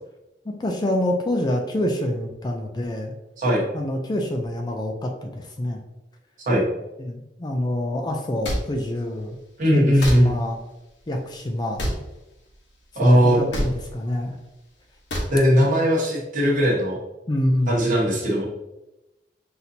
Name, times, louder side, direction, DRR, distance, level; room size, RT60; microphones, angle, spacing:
voice 1, 0.5-3.1 3.7-5.8 7.0-9.4 9.7-10.6 11.1-11.8 13.0-14.4 17.3-17.8, left 1 dB, 25° left, 2 dB, 0.4 m, -26 dB
sound 1, 8.4-8.6 10.0-10.2 11.8-12.0 13.5-13.7 15.1-15.3, equal, 85° left, 1.0 m, -25 dB
voice 2, 9.6-10.4 12.9-13.4 15.3-17.0 17.7-18.4, equal, 50° right, -3 dB, 1.2 m, -19 dB
5.9 x 2.7 x 2.7 m, 0.97 s
head